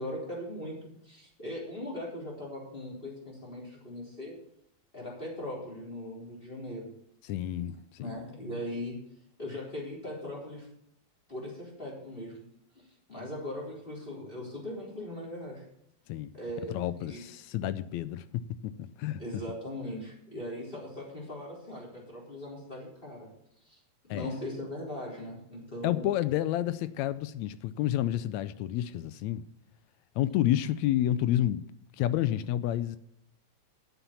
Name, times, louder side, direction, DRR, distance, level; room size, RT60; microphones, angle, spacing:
voice 1, 0.0-4.3 4.9-6.9 8.0-9.0 9.4-10.7 11.3-12.4 12.7-15.7 16.3-17.2 19.2-23.3 23.6-23.8 24.1-26.1, left 1 dB, 15° left, 3.9 m, -39 dB
voice 2, 7.2-8.2 16.1-16.3 16.7-19.2 24.1-24.4 25.8-29.4 30.2-31.6 32.0-33.0, left 12 dB, 80° left, 1.8 m, -30 dB
10.0 x 8.3 x 6.8 m
omnidirectional pair, 3.3 m